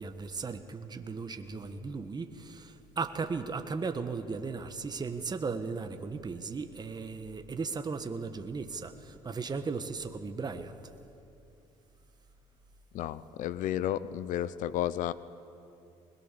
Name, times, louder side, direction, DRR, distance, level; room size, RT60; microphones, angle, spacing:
voice 1, 0.0-10.7, right 4 dB, 30° right, 8 dB, 1.5 m, -36 dB
voice 2, 12.9-15.1, left 11 dB, 70° left, 17 dB, 0.8 m, -32 dB
21.5 x 21.0 x 7.0 m, 2.8 s
supercardioid pair, 70°, 14 cm